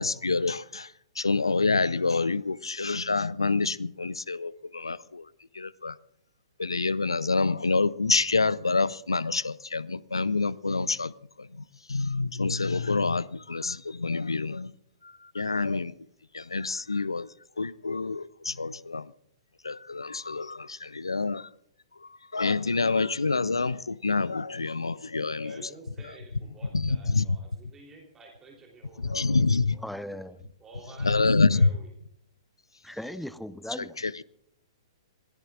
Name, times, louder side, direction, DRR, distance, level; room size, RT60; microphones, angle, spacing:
voice 1, 0.0-5.3 5.5-6.0 6.6-11.1 11.4-14.7 15.0-15.9 16.3-17.3 17.6-19.1 19.6-21.5 22.0-25.7 26.7-27.4 29.0-29.8 31.0-31.7 33.8-34.2, left 3 dB, 75° left, 0.6 m, -27 dB
voice 2, 25.4-29.9 30.6-31.9, right 3 dB, 15° right, 3.5 m, -51 dB
voice 3, 29.8-30.5 32.8-34.0, left 1 dB, ahead, 0.7 m, -38 dB
26.5 x 17.5 x 2.5 m
figure-of-eight pair, 115°, 3 cm